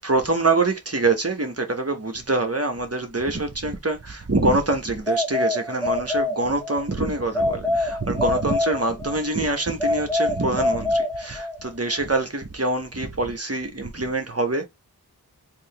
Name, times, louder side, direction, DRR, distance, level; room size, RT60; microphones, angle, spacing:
voice 1, 0.0-14.7, right 2 dB, 40° right, 1.1 m, -25 dB
sound 1, 5.1-6.8 7.3-9.3 9.8-11.7, left 2 dB, ahead, 1.0 m, -25 dB
3.6 x 2.8 x 3.4 m
wide cardioid pair, 45°, 37 cm